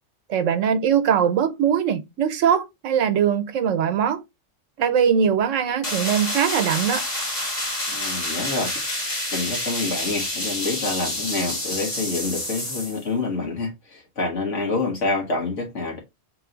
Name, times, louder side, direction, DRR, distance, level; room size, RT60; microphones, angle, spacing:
voice 1, 0.3-4.2 4.8-7.1, right 8 dB, 80° right, 1.1 m, -21 dB
sound 1, 5.8-13.0, left 1 dB, 35° left, 1.7 m, -28 dB
voice 2, 7.9-8.7 9.3-16.0, left 3 dB, 70° left, 2.0 m, -27 dB
3.7 x 3.1 x 3.8 m
omnidirectional pair, 1.3 m